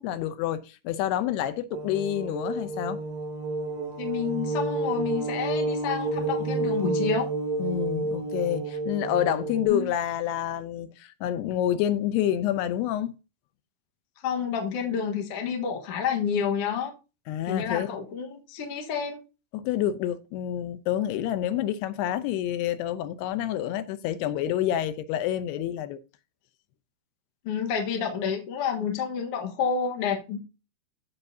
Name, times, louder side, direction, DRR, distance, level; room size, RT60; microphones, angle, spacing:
voice 1, 0.0-3.0 7.6-13.1 17.3-17.9 19.5-26.0, left 11 dB, 90° left, 2.7 m, -28 dB
sound 1, 1.7-9.7, right 2 dB, 60° right, 4.3 m, -30 dB
voice 2, 4.0-7.3 9.7-9.9 14.2-16.9 17.5-19.2 27.4-30.4, left 7 dB, 60° left, 1.6 m, -29 dB
15.0 x 5.6 x 2.7 m
omnidirectional pair, 4.6 m